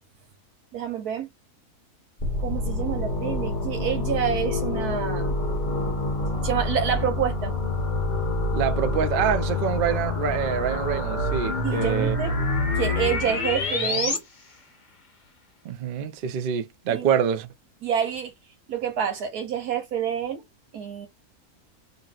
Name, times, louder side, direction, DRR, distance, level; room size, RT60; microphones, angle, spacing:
voice 1, 0.7-1.3 2.4-5.3 6.4-7.5 11.6-12.4 12.8-14.2 16.9-17.1 17.8-18.3 18.7-20.4 20.7-21.1, right 8 dB, 90° right, 1.5 m, -28 dB
sound 1, 2.2-14.2, left 2 dB, 40° left, 0.8 m, -27 dB
voice 2, 8.5-12.2 15.6-17.5, right 8 dB, 70° right, 0.5 m, -26 dB
2.9 x 2.7 x 2.3 m
omnidirectional pair, 1.6 m